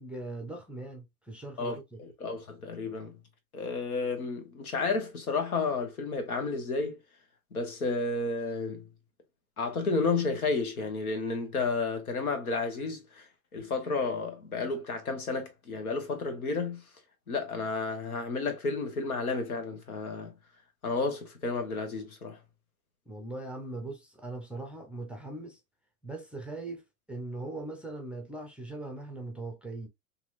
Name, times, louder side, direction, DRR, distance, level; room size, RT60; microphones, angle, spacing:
voice 1, 0.0-2.0 23.1-25.6 26.0-26.8 27.1-29.9, right 2 dB, 5° right, 0.4 m, -40 dB
voice 2, 1.6-3.2 3.5-7.0 7.5-8.8 9.6-16.8 17.3-20.3 20.8-22.4, left 3 dB, 90° left, 1.2 m, -32 dB
2.9 x 2.7 x 2.5 m
hypercardioid pair, 105°, 42 cm